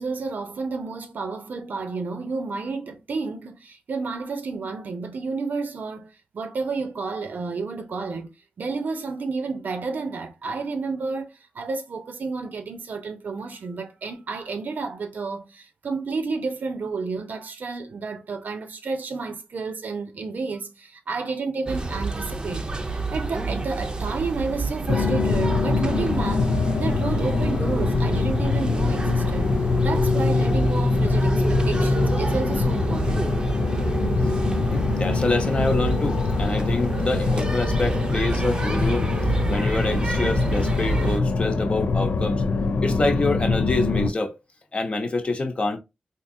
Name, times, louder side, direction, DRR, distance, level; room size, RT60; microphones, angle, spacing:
voice 1, 0.0-8.3 8.6-22.7 23.1-26.5 26.8-29.5 29.8-33.3, right 4 dB, 75° right, 0.7 m, -31 dB
sound 1, 21.7-41.2, right 3 dB, 30° right, 0.6 m, -29 dB
sound 2, 24.9-44.1, left 4 dB, 85° left, 0.4 m, -24 dB
voice 2, 33.9-42.4 42.8-44.4 44.7-45.8, left 2 dB, 40° left, 0.8 m, -27 dB
3.7 x 2.7 x 2.6 m
wide cardioid pair, 95°, 3 cm